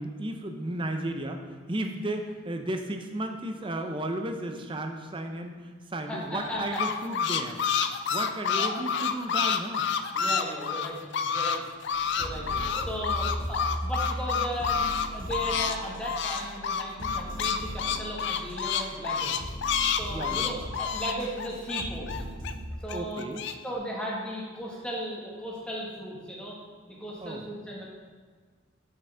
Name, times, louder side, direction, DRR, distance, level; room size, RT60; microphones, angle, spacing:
voice 1, 0.0-7.6 8.1-9.9 11.0-11.3 19.2-19.4 20.1-20.6 22.9-23.4 27.2-27.4, right 1 dB, 25° right, 5 dB, 0.6 m, -34 dB
sound 1, 1.9-2.4 3.5-4.0 6.2-6.6 8.4-8.9 10.4-10.9 11.7-11.8 12.2-12.9 14.6-14.8, left 2 dB, 75° left, 1.6 m, -45 dB
voice 2, 6.0-6.8 7.9-8.1 10.1-11.0 11.3-11.6 12.2-12.5 12.9-19.5 20.0-22.1 22.8-23.3 23.6-26.5 27.0-27.9, equal, 5° left, -5 dB, 1.4 m, -36 dB
sound 2, 6.4-11.6 11.8-15.8 16.0-22.5 22.9-23.5, left 7 dB, 55° left, 0.4 m, -28 dB
sound 3, 11.8-22.7, equal, 70° right, 2.1 m, -38 dB
7.8 x 6.3 x 3.4 m, 1.5 s
head